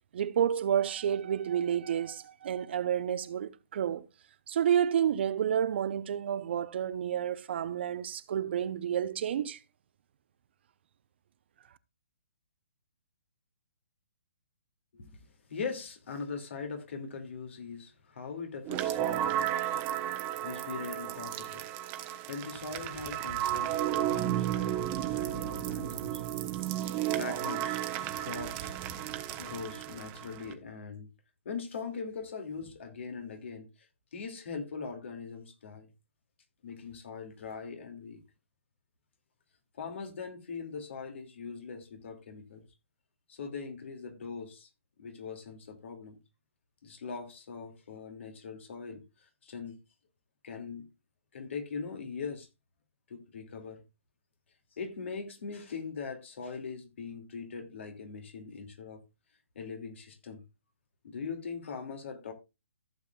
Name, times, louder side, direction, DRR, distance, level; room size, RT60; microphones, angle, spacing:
voice 1, 0.1-4.0 4.5-9.6, right 9 dB, 50° right, 0.8 m, -30 dB
voice 2, 15.5-19.6 20.4-21.6 22.3-26.3 27.1-28.8 29.4-31.1 31.4-33.9 34.1-35.9 36.6-38.2 39.7-42.6 43.3-44.7 45.0-46.2 46.8-49.8 50.4-50.9 51.3-52.5 53.1-53.8 54.7-59.0 59.6-60.4 61.0-62.3, left 5 dB, 60° left, 2.5 m, -41 dB
sound 1, 18.7-30.5, right 12 dB, 25° right, 1.0 m, -33 dB
15.0 x 7.5 x 2.4 m
hypercardioid pair, 145°, 7 cm